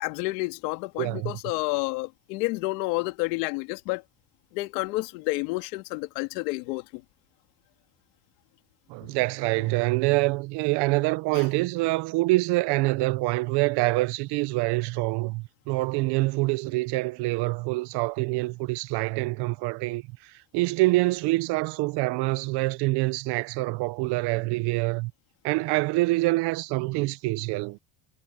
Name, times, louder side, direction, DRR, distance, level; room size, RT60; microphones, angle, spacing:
voice 1, 0.0-4.0 4.5-7.0 9.0-9.1 11.3-11.4, left 22 dB, 90° left, 2.4 m, -30 dB
voice 2, 1.0-1.3 8.9-25.1 25.4-27.8, right 22 dB, 55° right, 0.7 m, -26 dB
cardioid pair, 150°, 47 cm